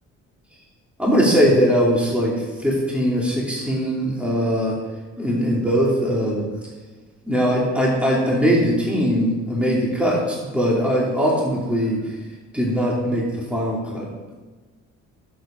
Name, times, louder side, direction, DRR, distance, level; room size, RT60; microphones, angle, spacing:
voice 1, 1.0-4.8 5.2-6.4 7.2-12.1 12.5-14.3, equal, 5° right, -4 dB, 2.8 m, -21 dB
11.0 x 7.6 x 4.4 m, 1.3 s
cardioid pair, 90°, 30 cm